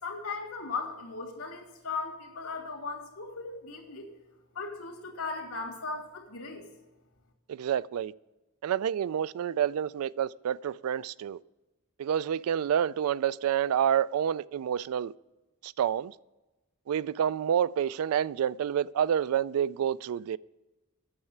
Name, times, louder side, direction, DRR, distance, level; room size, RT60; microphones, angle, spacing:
voice 1, 0.0-4.1 4.5-6.7, left 4 dB, 85° left, 2.4 m, -37 dB
voice 2, 7.5-8.1 8.6-11.4 12.0-15.1 15.6-16.1 16.9-20.4, right 9 dB, 70° right, 0.3 m, -28 dB
8.9 x 6.6 x 7.8 m
head